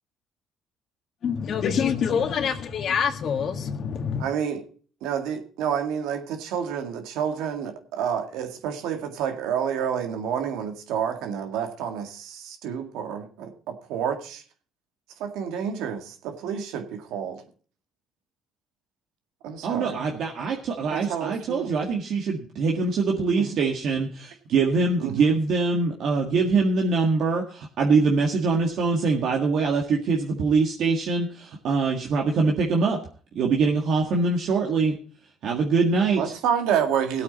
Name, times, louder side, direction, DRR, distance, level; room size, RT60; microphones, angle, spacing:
voice 1, 1.2-4.3, left 7 dB, 60° left, 1.8 m, -26 dB
voice 2, 4.2-4.6 5.0-14.4 15.2-17.4 19.4-20.0 20.9-21.7 23.3-23.6 25.0-25.3 36.2-37.2, right 8 dB, 85° right, 1.9 m, -29 dB
voice 3, 19.6-33.0 33.4-35.0 35.4-36.3, right 4 dB, 65° right, 1.8 m, -23 dB
17.5 x 8.5 x 4.1 m
cardioid pair, 90°, 0 cm